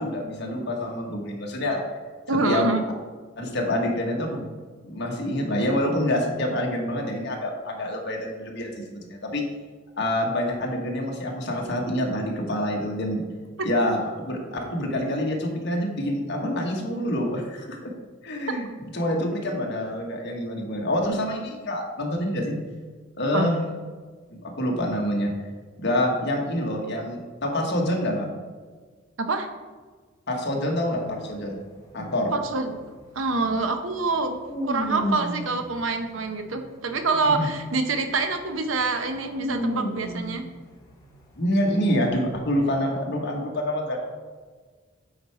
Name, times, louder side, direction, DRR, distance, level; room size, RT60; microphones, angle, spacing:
voice 1, 0.0-1.8 2.5-2.6 3.4-4.4 4.8-9.4 10.0-13.2 13.6-17.9 18.2-22.6 23.2-23.6 24.3-25.3 25.8-28.3 30.3-31.5 31.9-32.3 37.3-37.5 41.4-44.0, left 1 dB, 60° left, 0 dB, 1.4 m, -26 dB
voice 2, 2.3-2.8 23.3-23.5 29.2-29.5 32.3-32.7 33.1-34.4 34.6-40.4, right 3 dB, 75° right, 7 dB, 0.8 m, -26 dB
sound 1, 30.9-37.6 38.0-38.3 38.6-41.2 41.8-42.1, equal, 20° left, 1.3 m, -33 dB
8.7 x 4.6 x 4.8 m, 1.5 s
head